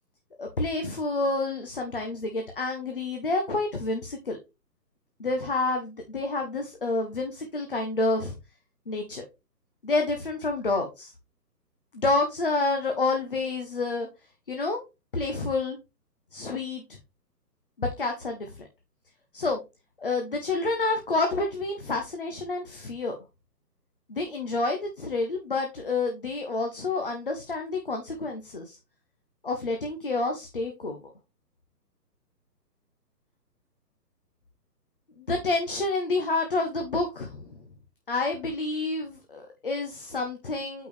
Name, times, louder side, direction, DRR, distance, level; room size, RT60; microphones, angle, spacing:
voice 1, 0.4-4.4 5.2-8.4 8.9-9.2 9.8-11.1 11.9-14.1 14.5-14.8 15.1-15.8 16.3-16.8 17.8-18.6 19.3-19.6 20.0-23.2 24.1-28.8 29.4-31.0 35.2-37.6 38.1-40.9, left 3 dB, 35° left, 3 dB, 0.8 m, -29 dB
8.3 x 4.6 x 3.2 m, 0.26 s
hypercardioid pair, 175°, 49 cm